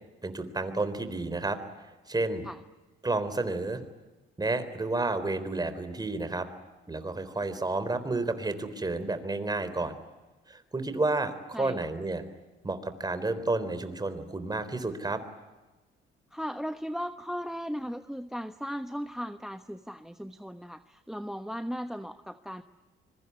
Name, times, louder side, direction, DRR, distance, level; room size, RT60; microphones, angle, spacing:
voice 1, 0.2-2.5 3.0-3.8 4.4-6.5 6.9-9.9 10.5-12.2 12.6-15.2, right 2 dB, 20° right, 11 dB, 4.0 m, -31 dB
voice 2, 16.3-22.6, equal, ahead, 10 dB, 1.1 m, -37 dB
25.5 x 23.0 x 9.8 m, 1.1 s
cardioid pair, 90°, 20 cm